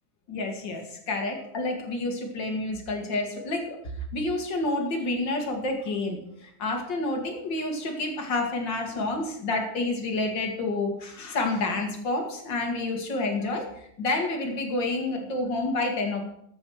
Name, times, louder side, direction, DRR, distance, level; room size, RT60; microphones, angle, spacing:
voice 1, 0.3-3.8 4.1-13.7 14.0-16.3, left 2 dB, 40° left, 2 dB, 2.1 m, -29 dB
13.0 x 6.4 x 6.3 m, 0.73 s
omnidirectional pair, 3.6 m